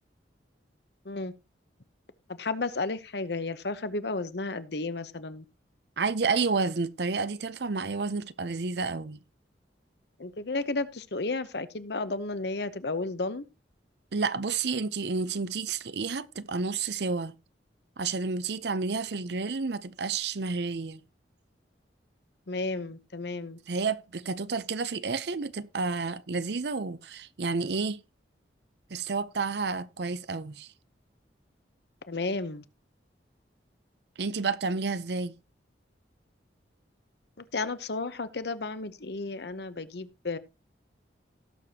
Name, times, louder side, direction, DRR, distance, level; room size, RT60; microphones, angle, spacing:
voice 1, 2.3-5.4 10.2-13.4 22.5-23.6 32.1-32.6 37.4-40.4, left 3 dB, 65° left, 0.9 m, -33 dB
voice 2, 6.0-9.2 14.1-17.3 18.0-21.0 23.7-28.0 28.9-30.7 34.2-35.3, right 4 dB, 65° right, 0.7 m, -30 dB
18.0 x 6.8 x 2.9 m
head